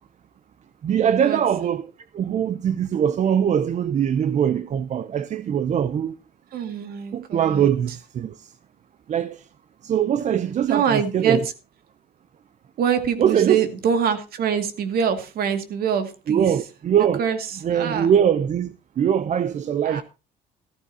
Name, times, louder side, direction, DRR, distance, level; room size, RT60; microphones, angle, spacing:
voice 1, 0.8-1.9 2.1-6.2 7.1-8.3 9.1-9.4 9.8-11.5 13.2-13.6 16.3-17.3 17.6-20.0, right 9 dB, 45° right, 0.7 m, -22 dB
voice 2, 6.5-7.7 10.7-11.4 12.8-16.5 17.2-18.1 19.8-20.0, right 7 dB, 65° right, 2.3 m, -24 dB
14.0 x 14.0 x 2.8 m
cardioid pair, 110°, 17 cm